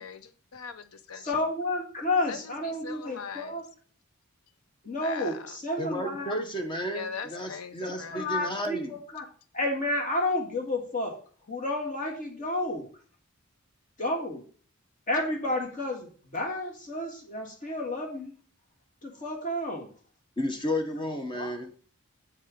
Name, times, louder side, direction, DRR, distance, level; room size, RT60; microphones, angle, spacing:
voice 1, 0.0-1.3 2.3-2.4 2.8-3.6 5.0-5.4 6.9-8.3, left 6 dB, 90° left, 12 dB, 0.6 m, -40 dB
voice 2, 1.1-3.6 4.8-6.4 7.9-9.2 9.5-11.1 11.5-12.9 14.0-14.4 15.1-18.3 19.0-19.9 20.9-21.0 21.3-21.5, left 2 dB, 40° left, 0 dB, 1.6 m, -31 dB
voice 3, 5.8-9.0 20.4-21.7, left 1 dB, 20° left, 5 dB, 0.8 m, -32 dB
7.6 x 4.3 x 5.0 m, 0.43 s
head